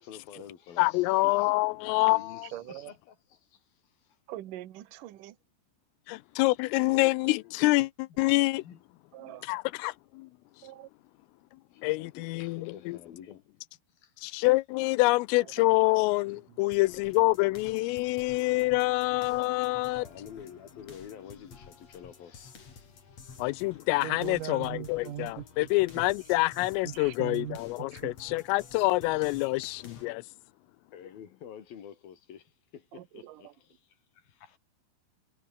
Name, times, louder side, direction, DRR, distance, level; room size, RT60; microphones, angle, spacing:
voice 1, 0.0-1.5 1.8-3.6 6.3-6.4 6.9-7.1 8.3-8.8 11.7-13.4 13.9-14.5 15.8-16.2 18.2-18.3 19.9-23.3 30.9-34.6, left 8 dB, 50° left, 4.1 m, -49 dB
voice 2, 0.8-2.5 6.1-8.6 9.4-10.3 11.8-13.0 14.2-20.1 23.4-30.2, left 22 dB, 90° left, 3.4 m, -26 dB
voice 3, 2.5-2.9 4.3-5.4 9.1-9.5 10.6-10.9 15.6-15.8 24.0-25.7 26.0-26.1 26.8-28.1 32.9-33.5, right 13 dB, 65° right, 2.2 m, -41 dB
sound 1, 16.7-30.1, left 5 dB, 35° left, 4.3 m, -51 dB
omnidirectional pair, 5.7 m